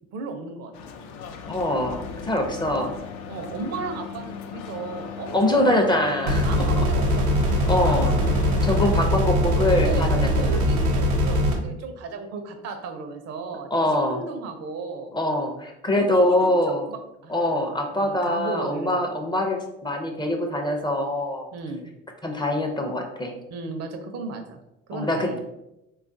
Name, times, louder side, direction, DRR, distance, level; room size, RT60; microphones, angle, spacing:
voice 1, 0.1-0.7 3.3-6.1 6.4-7.3 7.9-8.9 9.8-15.1 15.9-16.5 16.9-17.5 17.9-19.2 21.5-21.8 23.5-24.6 24.9-25.4, right 3 dB, 60° right, 6 dB, 0.6 m, -35 dB
sound 1, 0.7-8.8, left 7 dB, 70° left, 0.5 m, -37 dB
voice 2, 1.5-3.0 5.3-6.9 7.7-8.1 8.6-10.6 13.7-14.2 15.1-16.8 17.3-21.5 22.2-23.3 24.9-25.4, left 1 dB, 15° left, 3 dB, 0.4 m, -24 dB
sound 2, 6.3-11.5, equal, 80° right, 0.8 m, -21 dB
3.4 x 2.3 x 2.5 m, 0.88 s
supercardioid pair, 75°, 30 cm